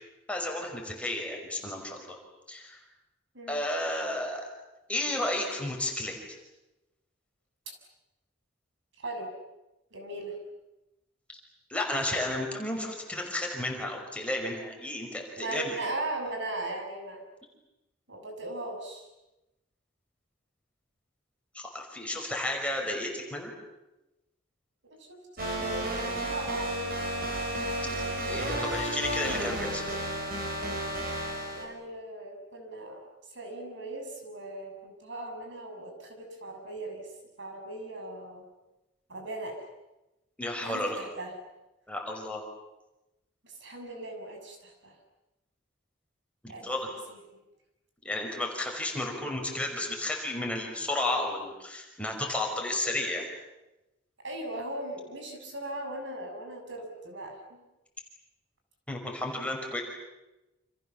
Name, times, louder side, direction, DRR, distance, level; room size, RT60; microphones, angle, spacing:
voice 1, 0.3-2.2 2.5-2.8 3.5-4.4 4.9-6.2 11.7-15.8 21.5-23.5 27.8-28.0 28.2-29.8 40.4-41.0 41.9-42.4 46.4-46.9 48.0-53.3 58.9-59.8, left 1 dB, 5° left, 1 dB, 5.5 m, -32 dB
voice 2, 9.0-9.3 9.9-10.4 15.3-17.2 18.1-19.1 25.0-27.0 31.5-37.1 37.4-38.5 39.1-39.6 40.6-41.3 43.4-45.0 46.5-46.8 47.1-47.2 54.2-57.6, right 2 dB, 65° right, 3 dB, 6.9 m, -38 dB
sound 1, 25.4-31.7, right 1 dB, 50° right, 6.7 m, -32 dB
29.5 x 28.0 x 7.2 m, 0.97 s
head